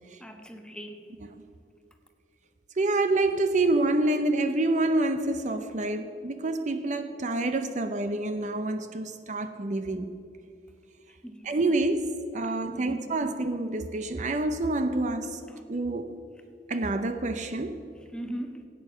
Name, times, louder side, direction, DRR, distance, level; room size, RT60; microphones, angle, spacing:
voice 1, 0.2-1.1 11.2-11.4 12.4-13.1 18.1-18.6, right 1 dB, 5° left, 1.1 m, -39 dB
voice 2, 2.8-10.1 11.4-15.4 15.7-16.2 16.7-17.9, right 2 dB, 45° right, 0.6 m, -27 dB
15.5 x 9.0 x 7.1 m
head